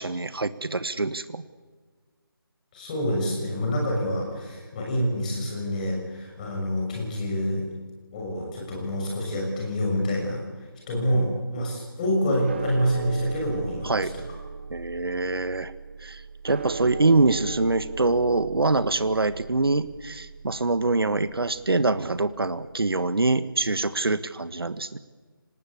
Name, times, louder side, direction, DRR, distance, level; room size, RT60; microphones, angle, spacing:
voice 1, 0.0-1.4 13.8-14.1 14.7-15.7 16.0-25.0, right 3 dB, 75° right, 13 dB, 1.4 m, -24 dB
voice 2, 2.7-7.7 8.1-10.4 10.9-14.2, equal, 20° left, -1 dB, 6.5 m, -27 dB
sound 1, 12.5-22.9, right 4 dB, 30° right, 1.0 m, -38 dB
25.5 x 19.5 x 8.6 m, 1.5 s
figure-of-eight pair, 165°, 12 cm